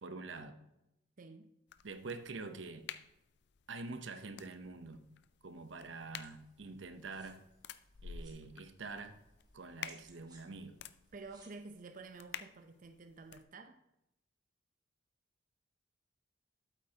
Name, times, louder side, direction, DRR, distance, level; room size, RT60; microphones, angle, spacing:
voice 1, 0.0-0.6 1.8-2.8 3.7-5.0 5.4-7.4 8.0-9.2 9.5-10.8, right 3 dB, 90° right, 0.7 m, -46 dB
voice 2, 1.2-1.5 11.1-13.8, right 3 dB, 45° right, 0.6 m, -50 dB
sound 1, 1.7-13.4, left 8 dB, 65° left, 0.4 m, -52 dB
sound 2, 5.6-11.5, right 3 dB, 20° right, 1.5 m, -66 dB
8.5 x 8.2 x 2.8 m
head